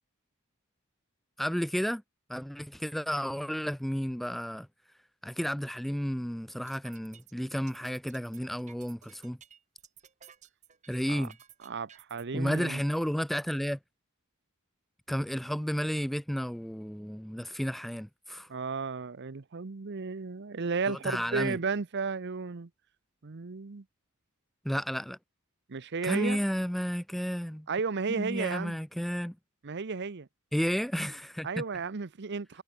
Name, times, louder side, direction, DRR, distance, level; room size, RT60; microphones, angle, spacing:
voice 1, 1.4-2.0 2.3-4.7 5.2-9.4 10.9-11.4 12.3-13.8 15.1-18.5 20.9-21.6 24.6-25.2 26.0-27.7 28.1-29.4 30.5-31.6, equal, ahead, 0.3 m, -32 dB
sound 1, 6.5-12.2, right 9 dB, 35° right, 1.1 m, -55 dB
voice 2, 11.6-12.8 18.5-22.7 23.2-23.8 25.7-26.4 27.7-28.8 29.6-30.3 31.4-32.6, right 4 dB, 55° right, 0.7 m, -33 dB
head